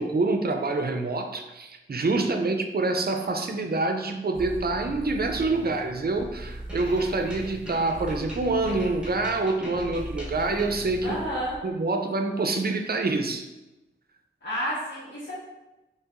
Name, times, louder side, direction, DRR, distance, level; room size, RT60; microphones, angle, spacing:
voice 1, 0.0-11.2 11.6-13.4, right 3 dB, 50° right, 5 dB, 0.4 m, -26 dB
sound 1, 4.3-11.6, right 1 dB, 30° right, 1.0 m, -40 dB
sound 2, 6.7-11.0, right 1 dB, 5° right, 1.0 m, -42 dB
voice 2, 11.0-11.6 14.4-15.3, equal, 65° left, -9 dB, 1.2 m, -31 dB
4.4 x 3.0 x 2.5 m, 1.0 s
wide cardioid pair, 55°, 21 cm